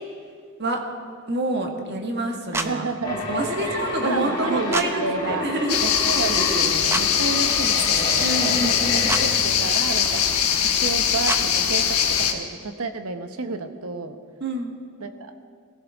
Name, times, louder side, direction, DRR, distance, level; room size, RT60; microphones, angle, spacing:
voice 1, 1.3-2.8 3.3-5.0 5.3-5.8 8.2-9.2 14.4-14.7, right 1 dB, 50° right, 2 dB, 1.6 m, -27 dB
sound 1, 2.5-2.7 4.7-4.9 6.9-7.1 9.1-9.2 11.3-11.4, right 2 dB, 10° right, 0.5 m, -25 dB
voice 2, 2.5-3.2 3.6-5.4 5.8-8.7 9.2-10.5 10.8-14.2 15.0-15.3, right 3 dB, 75° right, 7 dB, 1.0 m, -31 dB
sound 2, 3.0-9.2, left 2 dB, 20° left, 3.4 m, -30 dB
sound 3, 5.7-12.3, left 8 dB, 85° left, 1.2 m, -21 dB
20.0 x 15.0 x 3.6 m, 2.1 s
head